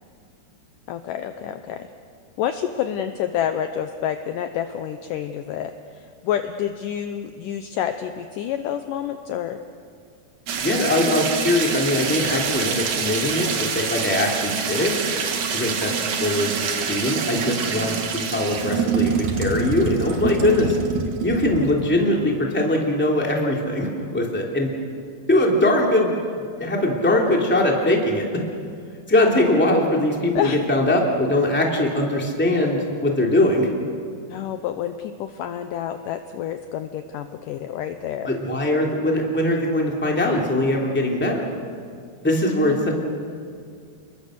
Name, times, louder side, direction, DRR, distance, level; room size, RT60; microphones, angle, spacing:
voice 1, 0.9-1.9 2.4-9.6 30.4-30.6 34.3-38.3 42.5-42.9, left 10 dB, 80° left, 8 dB, 2.0 m, -28 dB
sound 1, 10.5-21.8, right 6 dB, 55° right, 2.6 m, -26 dB
voice 2, 10.6-15.0 15.5-15.9 16.2-20.8 21.2-24.7 25.3-28.3 29.1-33.7 38.3-41.4 42.2-42.9, left 1 dB, 5° left, -1 dB, 2.2 m, -21 dB
30.0 x 21.5 x 6.5 m, 2.2 s
omnidirectional pair, 4.6 m